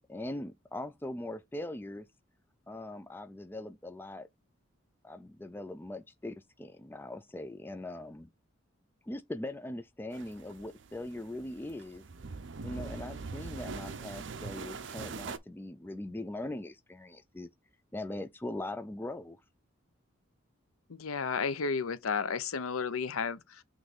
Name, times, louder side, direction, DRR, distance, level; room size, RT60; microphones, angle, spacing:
voice 1, 0.0-2.1 2.7-4.3 5.0-8.3 9.0-12.1 12.6-17.5 17.9-19.4, left 1 dB, 10° left, 0.3 m, -41 dB
sound 1, 10.1-15.4, right 4 dB, 60° right, 0.6 m, -42 dB
voice 2, 20.9-23.6, left 5 dB, 90° left, 0.7 m, -32 dB
6.1 x 3.1 x 5.1 m
head